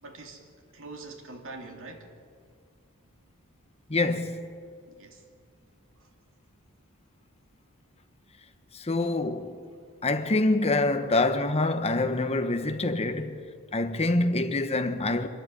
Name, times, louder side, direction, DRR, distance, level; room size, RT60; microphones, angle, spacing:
voice 1, 0.0-2.1 4.9-5.2 6.0-6.1, right 3 dB, 65° right, 2.5 m, -44 dB
voice 2, 3.9-4.5 8.7-9.6 10.0-13.4 13.7-15.3, left 2 dB, 30° left, 1.2 m, -26 dB
24.0 x 13.5 x 9.9 m
head